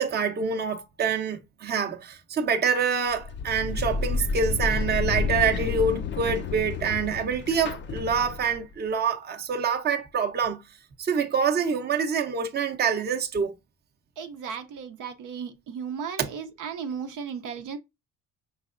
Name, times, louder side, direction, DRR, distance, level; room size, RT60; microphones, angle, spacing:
voice 1, 0.0-10.6 11.0-13.5 16.2-16.3, right 6 dB, 30° right, 0.7 m, -26 dB
sound 1, 3.1-8.7, left 5 dB, 35° left, 0.4 m, -30 dB
voice 2, 14.2-17.8, right 6 dB, 65° right, 0.7 m, -35 dB
5.2 x 3.2 x 2.5 m
cardioid pair, 95°, 34 cm